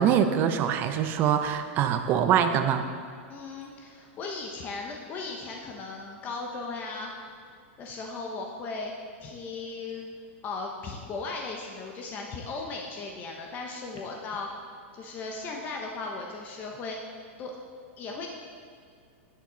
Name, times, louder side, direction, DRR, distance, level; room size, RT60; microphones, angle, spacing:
voice 1, 0.0-2.9, right 8 dB, 30° right, 8 dB, 0.6 m, -24 dB
voice 2, 3.3-7.1 7.8-8.9 9.2-10.1 10.4-14.5 14.9-17.0 17.4-17.5 18.0-18.3, left 3 dB, 25° left, 1 dB, 0.8 m, -37 dB
17.0 x 5.9 x 3.9 m, 2.2 s
supercardioid pair, 160°, 7 cm